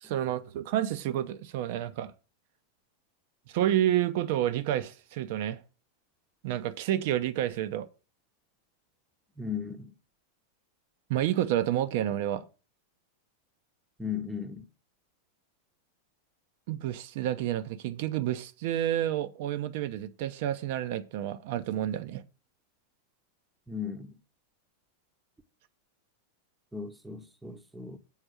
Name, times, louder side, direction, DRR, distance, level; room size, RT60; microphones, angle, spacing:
voice 1, 0.0-2.1 3.5-5.6 6.4-7.9 11.1-12.4 16.7-22.2, right 12 dB, 50° right, 0.7 m, -29 dB
voice 2, 9.4-9.9 14.0-14.6 23.7-24.1 26.7-28.0, left 6 dB, 5° right, 0.9 m, -36 dB
7.3 x 4.4 x 6.5 m
figure-of-eight pair, 90°, 0 cm